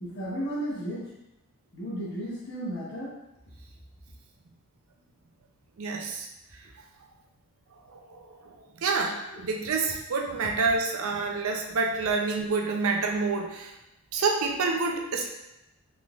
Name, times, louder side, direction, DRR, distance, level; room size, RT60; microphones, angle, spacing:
voice 1, 0.0-1.1 1.7-3.1 9.3-9.4, equal, 50° left, -5 dB, 1.0 m, -34 dB
voice 2, 5.8-6.3 7.9-13.7 14.1-15.3, right 4 dB, 70° right, 2 dB, 0.5 m, -28 dB
3.8 x 3.1 x 2.4 m, 0.92 s
head